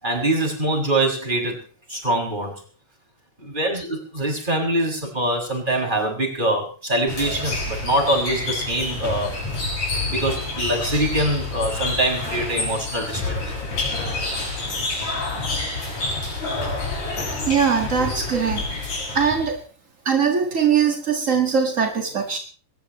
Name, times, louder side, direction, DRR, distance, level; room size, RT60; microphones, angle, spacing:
voice 1, 0.0-1.6 1.9-2.6 3.4-9.4 10.1-13.4, right 1 dB, 15° right, 1 dB, 6.7 m, -24 dB
sound 1, 7.1-19.5, left 2 dB, 55° left, 7.9 m, -28 dB
voice 2, 17.5-18.7 19.1-19.6 20.0-22.4, right 6 dB, 35° right, 3 dB, 1.3 m, -21 dB
22.0 x 20.0 x 3.1 m, 0.39 s
omnidirectional pair, 4.0 m